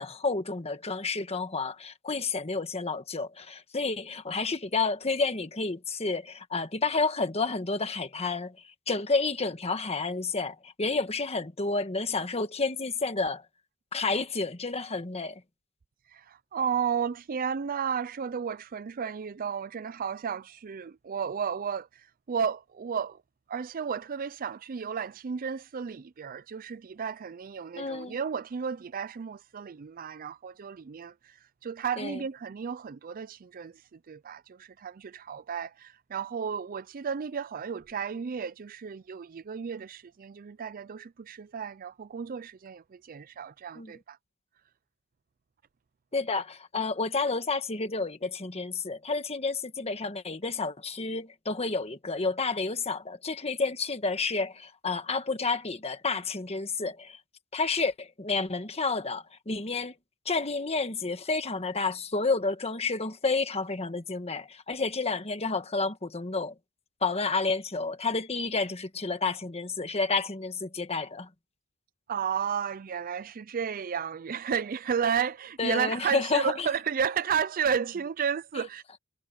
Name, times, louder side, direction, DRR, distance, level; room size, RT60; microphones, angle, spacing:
voice 1, 0.0-8.5 8.9-13.4 13.9-15.4 27.8-28.2 32.0-32.2 43.7-43.9 46.1-57.2 57.5-59.9 60.2-66.5 67.0-71.3 75.6-76.7, left 3 dB, 30° left, 1.4 m, -30 dB
voice 2, 16.1-23.2 23.5-31.4 31.6-33.8 34.1-44.2 72.1-79.0, right 7 dB, 40° right, 0.4 m, -33 dB
head